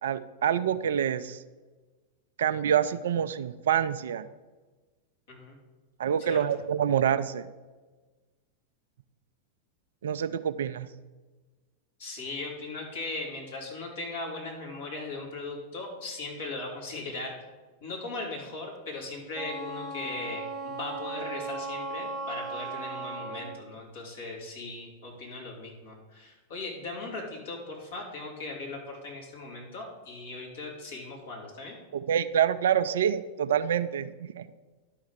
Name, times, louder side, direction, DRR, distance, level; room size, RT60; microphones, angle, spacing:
voice 1, 0.0-1.4 2.4-4.2 6.0-7.5 10.0-10.9 31.9-34.5, right 9 dB, 60° right, 13 dB, 0.4 m, -27 dB
voice 2, 6.2-6.6 12.0-17.3 17.8-31.8, left 2 dB, 60° left, -2 dB, 2.9 m, -38 dB
Wind instrument woodwind instrument, 19.3-23.6, right 3 dB, 10° right, 1.1 m, -37 dB
11.5 x 5.6 x 4.9 m, 1.3 s
figure-of-eight pair, 90°, 0 cm